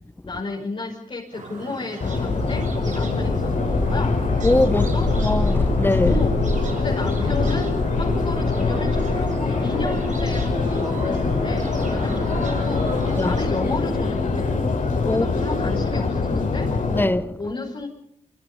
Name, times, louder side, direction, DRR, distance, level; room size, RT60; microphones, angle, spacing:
voice 1, 0.2-4.2 4.7-5.1 6.0-6.5 6.8-14.7 15.1-16.7 17.4-17.9, left 2 dB, 40° left, 6.0 m, -32 dB
sound 1, 1.3-13.4, right 4 dB, 70° right, 7.6 m, -39 dB
Subway metro underground, 2.0-17.0, left 3 dB, 70° left, 7.7 m, -23 dB
voice 2, 4.4-4.9 5.2-6.1 9.8-9.9 13.2-13.3 15.0-15.3 16.9-17.4, left 1 dB, 15° left, 1.5 m, -21 dB
26.5 x 26.5 x 5.5 m
cardioid pair, 80°, 13 cm